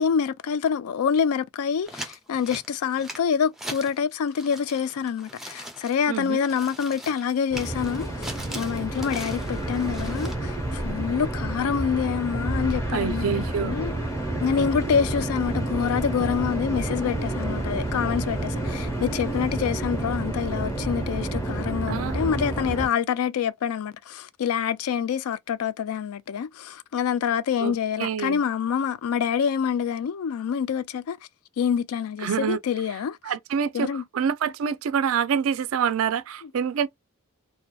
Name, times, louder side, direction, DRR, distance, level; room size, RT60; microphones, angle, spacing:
voice 1, 0.0-13.9 14.4-31.2 31.6-33.2 33.7-34.0, left 7 dB, 85° left, 0.3 m, -26 dB
sound 1, 1.9-4.0 4.3-10.4, right 1 dB, ahead, 0.4 m, -40 dB
voice 2, 6.1-6.4 12.9-13.8 21.9-22.4 27.6-28.4 32.2-32.6 33.2-33.9 34.1-36.9, right 7 dB, 65° right, 0.3 m, -26 dB
sound 2, 7.5-22.9, right 2 dB, 15° left, 0.9 m, -29 dB
2.6 x 2.1 x 2.2 m
head